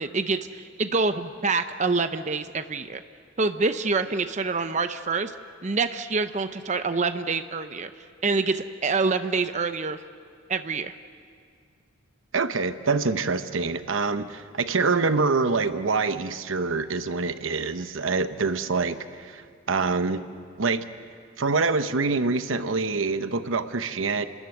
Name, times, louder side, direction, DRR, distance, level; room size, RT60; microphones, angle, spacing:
voice 1, 0.0-3.0 3.4-5.3 5.6-7.9 8.2-10.0 10.5-10.9, right 4 dB, 35° right, 9 dB, 0.7 m, -26 dB
voice 2, 12.3-20.2 20.6-20.8 21.4-24.3, right 4 dB, 90° right, 10 dB, 0.9 m, -25 dB
29.0 x 13.5 x 9.4 m, 2.1 s
head